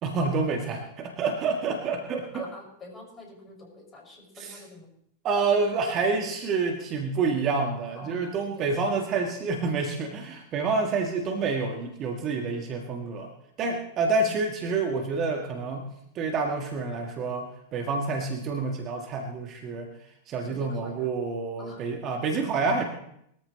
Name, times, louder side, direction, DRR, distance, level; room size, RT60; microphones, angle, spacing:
voice 1, 0.0-2.5 4.4-4.6 5.2-13.3 13.6-15.9 16.2-19.9 20.3-22.8, right 4 dB, 35° right, 3 dB, 1.8 m, -28 dB
voice 2, 2.3-4.9 7.9-8.7 14.2-14.4 20.5-21.1 21.6-21.8, left 2 dB, 20° left, -1 dB, 6.4 m, -46 dB
21.5 x 14.0 x 3.2 m, 0.74 s
figure-of-eight pair, 90°, 0 cm